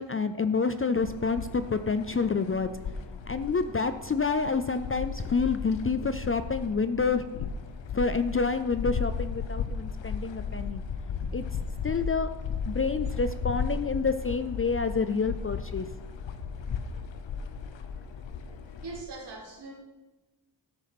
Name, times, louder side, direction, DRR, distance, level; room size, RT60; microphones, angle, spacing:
voice 1, 0.0-2.7 3.3-7.2 7.9-10.8 11.3-11.4 11.8-12.3 12.7-15.9, left 4 dB, 30° left, 11 dB, 0.4 m, -28 dB
sound 1, 1.0-19.0, left 5 dB, 75° left, 0.9 m, -35 dB
voice 2, 18.7-19.7, right 3 dB, 65° right, -2 dB, 3.1 m, -41 dB
12.5 x 7.2 x 5.9 m, 1.1 s
wide cardioid pair, 145°, 45 cm